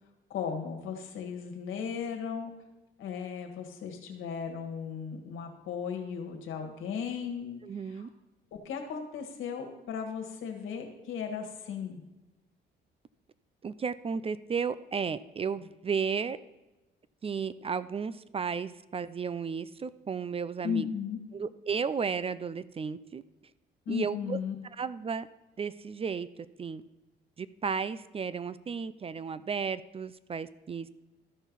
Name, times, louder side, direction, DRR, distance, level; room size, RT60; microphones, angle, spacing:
voice 1, 0.3-2.5 3.0-8.1 8.5-12.0 20.6-21.2 23.8-24.5, left 7 dB, 85° left, 3 dB, 1.6 m, -36 dB
voice 2, 7.6-8.1 13.6-16.4 17.2-20.9 21.3-23.2 23.9-24.4 24.8-25.3 25.6-26.3 26.6-26.8 27.4-30.9, right 6 dB, 30° right, 16 dB, 0.4 m, -33 dB
13.0 x 4.5 x 5.3 m, 1.0 s
cardioid pair, 90°, 20 cm